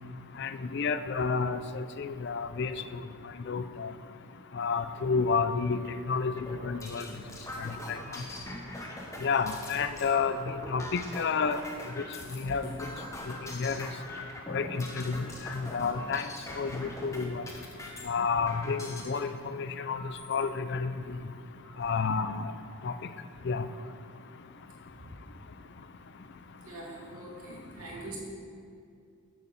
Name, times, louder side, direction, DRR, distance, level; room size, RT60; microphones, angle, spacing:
voice 1, 0.4-3.0 3.5-3.9 4.5-5.8 6.1-7.1 7.6-8.0 9.2-11.6 12.0-12.1 12.3-12.7 13.3-13.9 14.5-16.3 16.6-17.4 18.0-20.0 20.3-21.2 21.8-22.5 22.8-22.9 23.4-23.6, left 5 dB, 50° left, 11 dB, 0.4 m, -30 dB
sound 1, 6.4-19.2 19.9-20.4 21.0-21.1 21.4-22.0, left 1 dB, 15° left, 1.1 m, -42 dB
voice 2, 26.6-28.2, right 2 dB, 80° right, -4 dB, 2.7 m, -43 dB
7.8 x 7.6 x 7.1 m, 2.4 s
head